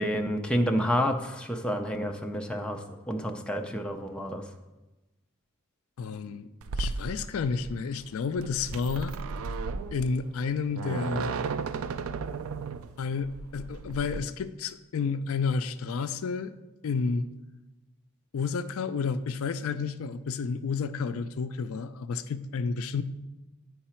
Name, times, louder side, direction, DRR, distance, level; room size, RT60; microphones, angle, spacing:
voice 1, 0.0-4.5, equal, 5° left, 3 dB, 0.4 m, -29 dB
voice 2, 6.0-6.5 6.8-9.1 9.9-11.3 13.0-16.5 16.8-17.3 18.3-23.0, left 5 dB, 70° left, 12 dB, 0.4 m, -31 dB
sound 1, 6.6-14.2, right 4 dB, 65° right, 0.3 m, -35 dB
9.2 x 4.8 x 4.4 m, 1.1 s
head